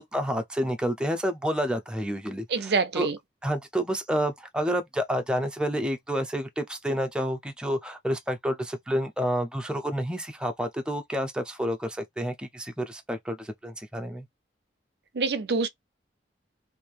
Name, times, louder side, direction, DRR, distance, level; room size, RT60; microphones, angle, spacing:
voice 1, 0.0-3.1 3.4-14.3, equal, 5° right, 0.6 m, -29 dB
voice 2, 2.5-3.2 15.1-15.7, right 4 dB, 60° right, 0.5 m, -26 dB
3.4 x 2.7 x 4.6 m
head